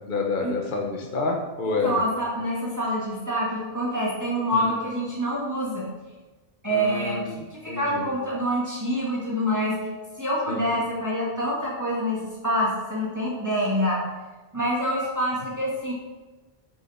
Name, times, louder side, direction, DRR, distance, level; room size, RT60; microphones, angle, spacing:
voice 1, 0.1-2.0 6.7-7.3 7.7-8.1 10.5-10.6, left 3 dB, 55° left, 1 dB, 1.3 m, -28 dB
voice 2, 1.6-5.9 6.6-9.9 10.2-14.0 14.5-15.9, equal, 15° right, -6 dB, 2.4 m, -26 dB
9.5 x 6.9 x 5.9 m, 1.2 s
omnidirectional pair, 1.0 m